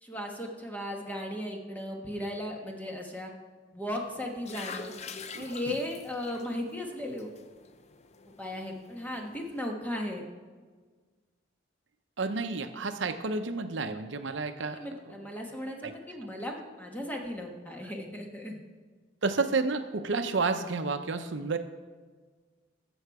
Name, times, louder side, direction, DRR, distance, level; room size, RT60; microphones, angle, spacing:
voice 1, 0.0-3.3 3.7-4.9 5.3-7.3 8.4-10.2 14.7-18.6, left 1 dB, 10° left, 1 dB, 1.3 m, -36 dB
sound 1, 4.0-9.6, left 5 dB, 35° left, 0.5 m, -46 dB
voice 2, 5.3-5.8 12.2-14.8 15.8-15.9 19.2-21.6, right 4 dB, 75° right, 8 dB, 0.7 m, -31 dB
13.5 x 7.1 x 4.8 m, 1.4 s
head